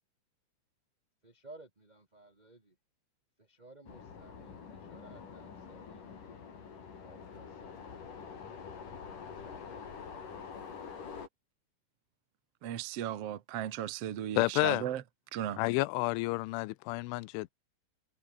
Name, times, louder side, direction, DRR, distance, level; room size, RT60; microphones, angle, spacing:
voice 1, 1.2-2.7 3.4-6.1 7.0-7.9 9.4-10.6, right 2 dB, 15° right, 1.9 m, -57 dB
sound 1, 3.9-11.3, left 6 dB, 45° left, 5.1 m, -46 dB
voice 2, 12.6-15.0 15.3-15.6, right 11 dB, 75° right, 1.4 m, -36 dB
voice 3, 14.4-14.8 15.6-17.5, left 22 dB, 90° left, 3.2 m, -30 dB
omnidirectional pair, 5.4 m